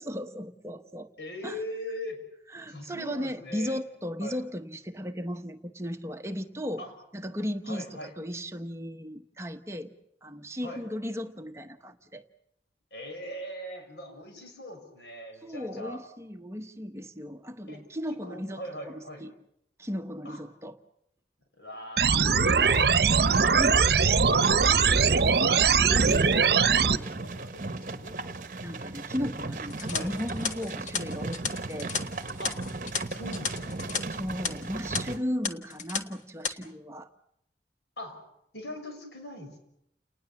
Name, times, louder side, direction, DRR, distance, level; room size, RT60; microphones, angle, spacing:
voice 1, 0.0-1.1 1.4-1.6 2.5-6.8 7.1-9.9 10.2-12.2 15.4-19.3 19.8-20.8 23.6-23.9 28.6-31.9 34.1-37.1, equal, 15° right, 7 dB, 1.0 m, -36 dB
voice 2, 1.2-2.2 2.7-3.8 4.2-4.4 6.8-6.9 7.7-8.1 10.6-10.8 12.9-16.0 17.7-19.3 20.2-20.4 21.6-28.2 29.8-30.1 32.4-32.6 33.1-33.8 38.0-38.2 38.5-39.6, left 1 dB, 85° left, 5 dB, 6.5 m, -41 dB
sound 1, 22.0-27.0, right 5 dB, 70° right, 0.9 m, -21 dB
sound 2, 22.1-35.2, right 3 dB, 45° right, 1.1 m, -37 dB
sound 3, 29.7-34.0 34.3-34.5 34.9-35.0 35.4-36.0 36.3-36.5, left 5 dB, 45° left, 1.5 m, -33 dB
29.5 x 19.5 x 7.1 m, 0.76 s
head